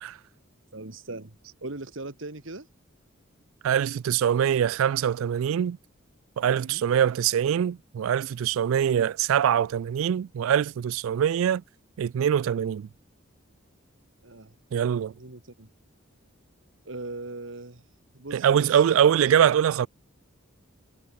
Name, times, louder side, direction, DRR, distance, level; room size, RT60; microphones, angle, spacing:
voice 1, 0.7-1.4 1.6-2.7 6.6-6.8 14.2-14.6 15.2-15.7 16.9-17.8 18.1-18.8, right 2 dB, 65° right, 1.9 m, -39 dB
voice 2, 3.6-5.8 6.4-11.6 12.0-12.9 14.7-15.1 18.3-19.9, right 9 dB, 80° right, 0.3 m, -23 dB
head